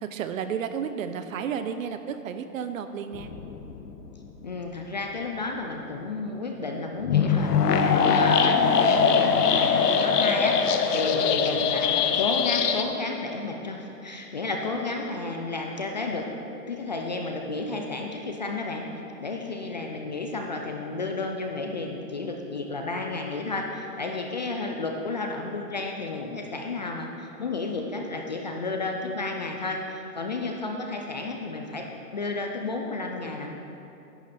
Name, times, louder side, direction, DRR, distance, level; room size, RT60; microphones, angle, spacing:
voice 1, 0.0-3.3, right 7 dB, 60° right, 10 dB, 0.7 m, -32 dB
sound 1, 3.1-4.1 7.0-12.8, left 6 dB, 80° left, 1.0 m, -22 dB
voice 2, 4.4-16.3 16.7-18.9 19.2-31.9 32.1-33.5, left 3 dB, 30° left, 2 dB, 0.4 m, -32 dB
11.0 x 9.4 x 4.2 m, 2.9 s
hypercardioid pair, 155°, 47 cm